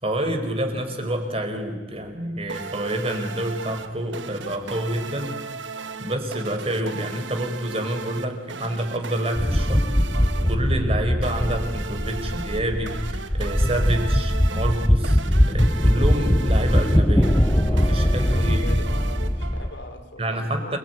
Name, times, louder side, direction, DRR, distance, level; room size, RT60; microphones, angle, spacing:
voice 1, 0.0-5.4 6.0-9.9 10.4-15.2 15.5-18.9 20.2-20.8, right 1 dB, 30° right, 5 dB, 4.6 m, -28 dB
sound 1, 2.5-19.9, right 4 dB, 75° right, 1.6 m, -37 dB
sound 2, 9.4-19.7, equal, 10° left, 0.9 m, -21 dB
voice 2, 18.3-20.8, left 1 dB, 65° left, 5 dB, 4.3 m, -41 dB
28.5 x 21.5 x 9.4 m, 1.2 s
head